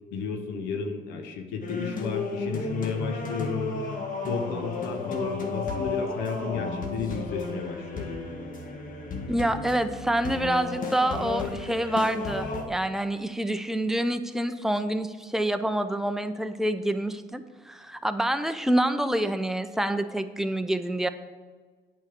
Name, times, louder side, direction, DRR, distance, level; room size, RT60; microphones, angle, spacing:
voice 1, 0.1-3.8 4.2-8.1, left 5 dB, 90° left, 5 dB, 0.9 m, -32 dB
sound 1, 1.6-12.6, left 3 dB, 50° left, 1.6 m, -33 dB
voice 2, 9.3-21.1, right 1 dB, ahead, 9 dB, 0.7 m, -27 dB
8.8 x 5.3 x 6.8 m, 1.4 s
supercardioid pair, 70°, 18 cm